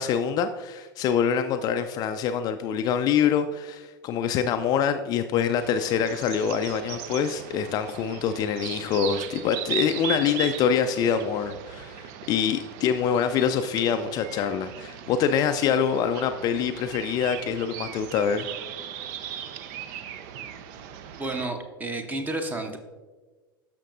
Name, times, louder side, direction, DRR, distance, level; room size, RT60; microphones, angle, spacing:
voice 1, 0.0-18.5, left 7 dB, 35° left, 8 dB, 0.4 m, -25 dB
sound 1, 5.6-21.5, right 9 dB, 45° right, 0.5 m, -38 dB
voice 2, 21.2-22.8, right 2 dB, 15° right, 7 dB, 0.9 m, -31 dB
12.5 x 5.8 x 2.5 m, 1.3 s
figure-of-eight pair, 85°, 12 cm